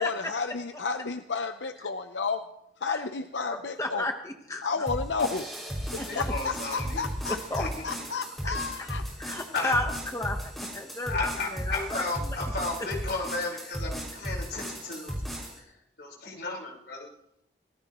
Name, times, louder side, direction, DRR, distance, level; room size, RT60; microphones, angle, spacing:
voice 1, 0.0-2.4 2.8-4.1 4.6-5.5 5.9-9.0, left 4 dB, 85° left, 8 dB, 0.8 m, -32 dB
voice 2, 3.5-4.7 6.0-6.2 7.3-7.7 8.4-8.9 9.2-12.0, left 2 dB, 15° left, 4 dB, 1.1 m, -33 dB
sound 1, 4.9-15.6, equal, ahead, 5.7 m, -35 dB
voice 3, 6.0-7.1 7.6-8.1 9.5-9.8 11.0-15.1 15.6-15.7 16.0-17.1, left 3 dB, 65° left, -1 dB, 4.7 m, -34 dB
24.5 x 18.5 x 3.1 m, 0.80 s
head